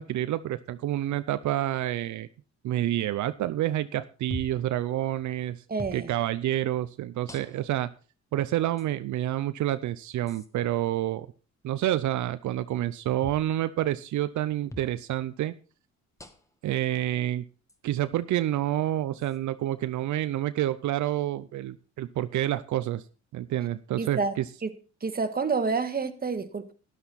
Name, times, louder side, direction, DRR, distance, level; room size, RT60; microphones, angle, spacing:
voice 1, 0.0-2.3 2.6-5.6 5.9-7.9 8.3-11.3 11.6-15.5 16.6-17.4 17.8-23.0 23.3-24.4, right 13 dB, 75° right, 12 dB, 0.7 m, -28 dB
sound 1, 4.3-4.7 5.8-6.0 7.3-7.8 8.8-8.9 10.3-10.5 13.2-13.5 14.7-14.9 16.2-16.6 17.7-17.8 19.2-19.4, left 1 dB, 10° left, 1.6 m, -41 dB
voice 2, 5.7-6.1 24.0-24.3 24.6-24.7 25.0-26.7, right 4 dB, 30° right, 9 dB, 1.6 m, -28 dB
13.0 x 11.0 x 4.1 m, 0.36 s
cardioid pair, 90°, 30 cm